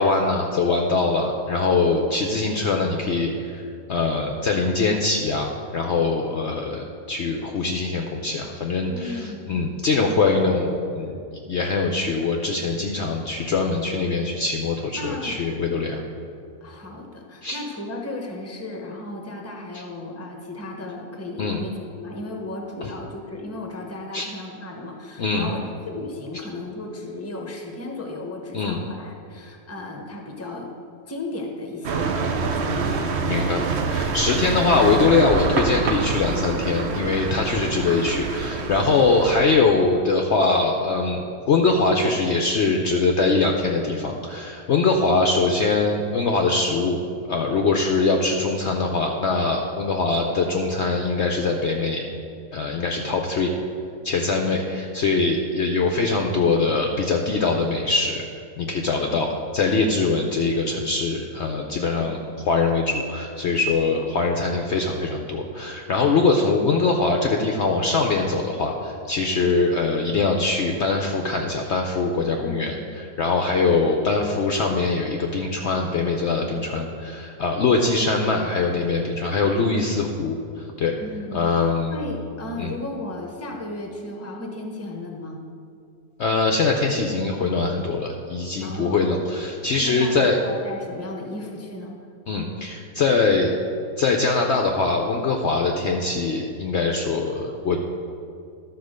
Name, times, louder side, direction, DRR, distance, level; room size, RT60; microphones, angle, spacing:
voice 1, 0.0-3.6 3.9-16.0 17.4-17.6 21.4-21.6 22.8-22.9 24.1-24.3 25.2-25.5 28.5-28.8 33.3-33.6 33.9-41.2 41.5-47.0 47.3-52.0 52.5-53.5 54.0-58.3 58.6-81.0 81.3-82.0 82.6-82.7 86.2-90.4 92.3-93.5 94.0-97.8, left 3 dB, 60° left, 2 dB, 0.8 m, -22 dB
voice 2, 8.9-9.6 15.0-15.4 16.6-25.6 25.8-30.7 31.1-33.3 72.4-72.9 81.0-85.4 88.6-89.1 89.8-91.9, left 2 dB, 10° left, 1 dB, 0.9 m, -35 dB
sound 1, 31.8-39.4, right 4 dB, 55° right, 0.8 m, -26 dB
12.0 x 4.3 x 6.5 m, 2.4 s
omnidirectional pair, 1.6 m